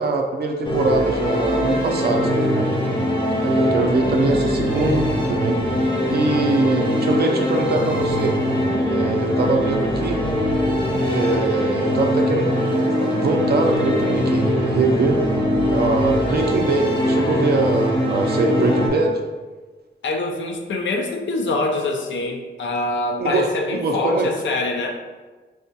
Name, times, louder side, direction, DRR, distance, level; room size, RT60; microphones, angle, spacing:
voice 1, 0.0-2.7 3.4-5.6 6.1-8.4 8.9-10.2 11.1-12.7 13.0-15.2 15.7-19.2 23.2-24.3, right 3 dB, 60° right, 3 dB, 0.4 m, -22 dB
sound 1, 0.6-18.9, left 1 dB, 25° left, 0.7 m, -21 dB
voice 2, 20.0-25.0, left 2 dB, 85° left, 3 dB, 0.5 m, -24 dB
4.8 x 2.2 x 2.7 m, 1.3 s
wide cardioid pair, 130°, 19 cm